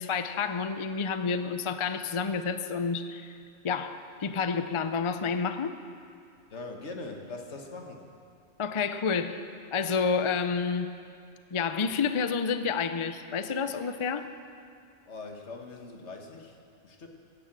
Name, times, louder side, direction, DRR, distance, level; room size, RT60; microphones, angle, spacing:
voice 1, 0.0-3.3 3.6-5.8 8.6-9.4 9.7-10.9 11.5-14.3, left 5 dB, 40° left, 10 dB, 0.5 m, -29 dB
voice 2, 6.5-8.0 15.1-17.1, left 3 dB, 75° left, 3 dB, 1.7 m, -42 dB
15.5 x 10.0 x 7.5 m, 2.3 s
omnidirectional pair, 1.2 m